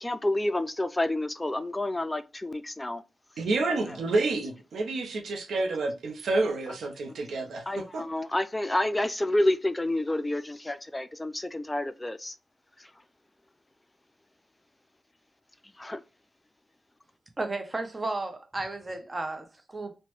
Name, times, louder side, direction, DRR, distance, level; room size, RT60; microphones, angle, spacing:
voice 1, 0.0-3.0 3.7-4.0 7.7-12.4 12.8-12.9 15.8-16.0, left 1 dB, 20° left, 0.3 m, -29 dB
voice 2, 3.4-8.0, right 3 dB, 80° right, 0.6 m, -29 dB
voice 3, 17.4-20.0, right 2 dB, 35° right, 0.7 m, -33 dB
2.9 x 2.1 x 3.0 m
supercardioid pair, 40°, 0 cm